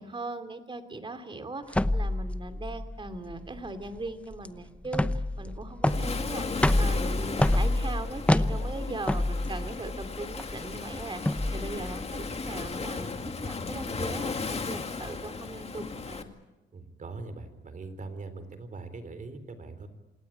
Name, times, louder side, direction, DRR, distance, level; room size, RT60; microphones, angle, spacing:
voice 1, 0.0-12.2 12.4-16.3, right 2 dB, 25° right, 10 dB, 2.8 m, -39 dB
sound 1, 1.7-12.9, left 1 dB, 5° left, 0.8 m, -28 dB
Waves surf, 5.9-16.2, left 4 dB, 30° left, 2.1 m, -36 dB
voice 2, 16.7-19.9, right 3 dB, 40° right, 11 dB, 3.8 m, -42 dB
27.5 x 18.5 x 8.8 m, 1.1 s
cardioid pair, 90°, 20 cm